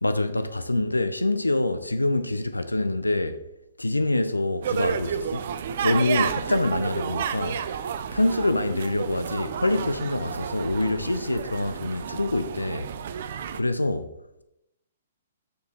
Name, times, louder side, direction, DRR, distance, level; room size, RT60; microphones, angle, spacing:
voice 1, 0.0-3.4 3.8-5.5 5.8-7.6 8.1-12.9 13.5-14.1, left 2 dB, 85° left, 0.5 m, -25 dB
sound 1, 4.6-13.6, right 8 dB, 50° right, 0.4 m, -31 dB
7.0 x 4.6 x 3.1 m
figure-of-eight pair, 120°, 0 cm